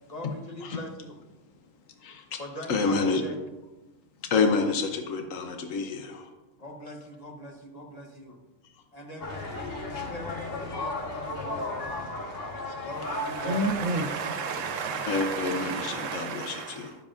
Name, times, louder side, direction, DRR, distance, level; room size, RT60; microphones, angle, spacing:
voice 1, 0.1-1.1 2.4-3.4 6.6-8.4 8.9-12.1 12.6-13.6 14.2-14.4, left 1 dB, 35° left, 1 dB, 1.0 m, -42 dB
voice 2, 2.0-2.4 2.7-3.2 4.3-6.3 15.1-17.0, left 4 dB, 85° left, 5 dB, 1.2 m, -28 dB
sound 1, 9.2-16.0, left 2 dB, 50° left, 1.4 m, -36 dB
voice 3, 13.1-16.9, right 3 dB, 75° right, 7 dB, 1.1 m, -31 dB
11.5 x 7.3 x 2.5 m, 1.1 s
omnidirectional pair, 1.3 m